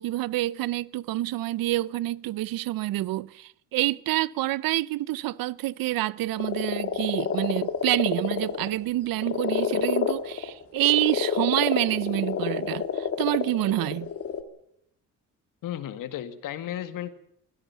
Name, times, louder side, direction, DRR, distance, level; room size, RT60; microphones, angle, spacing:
voice 1, 0.0-14.1, right 16 dB, 90° right, 0.8 m, -27 dB
sound 1, 6.4-8.7 9.1-14.4, left 7 dB, 45° left, 2.1 m, -28 dB
voice 2, 15.6-17.1, left 11 dB, 70° left, 2.0 m, -34 dB
24.0 x 16.5 x 7.1 m
cardioid pair, 175°, 34 cm